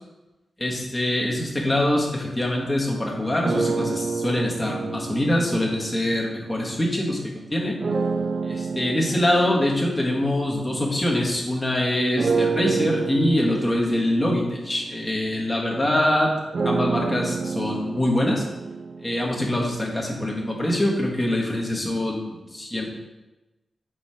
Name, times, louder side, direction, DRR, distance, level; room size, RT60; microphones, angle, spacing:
voice 1, 0.6-7.8 8.4-16.3 16.6-18.4 19.0-22.9, left 1 dB, 20° left, -2 dB, 1.5 m, -24 dB
sound 1, 3.4-7.0 7.8-11.6 12.2-20.1, right 4 dB, 45° right, 0.3 m, -29 dB
8.2 x 3.2 x 5.7 m, 1.1 s
wide cardioid pair, 125°, 0 cm